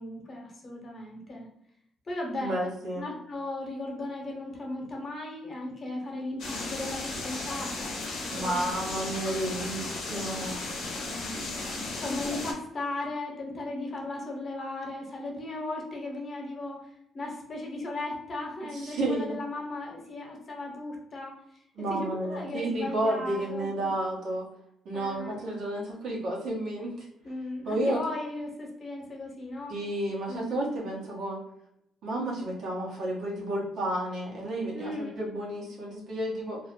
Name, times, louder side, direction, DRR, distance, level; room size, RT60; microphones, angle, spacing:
voice 1, 0.0-1.5 2.1-2.6 2.9-8.0 8.2-8.7 10.3-10.4 10.9-21.3 21.9-23.9 24.9-25.4 27.2-29.8 30.3-30.5 34.7-35.3, left 2 dB, 45° left, 0 dB, 0.9 m, -37 dB
voice 2, 2.4-3.0 8.3-10.6 18.7-19.3 21.8-24.5 24.8-26.9 27.7-28.0 29.7-31.4 32.0-36.6, right 1 dB, 75° right, -3 dB, 0.9 m, -31 dB
sound 1, 6.4-12.5, left 2 dB, 85° left, 0.6 m, -35 dB
2.5 x 2.0 x 2.9 m, 0.76 s
cardioid pair, 90°, 0 cm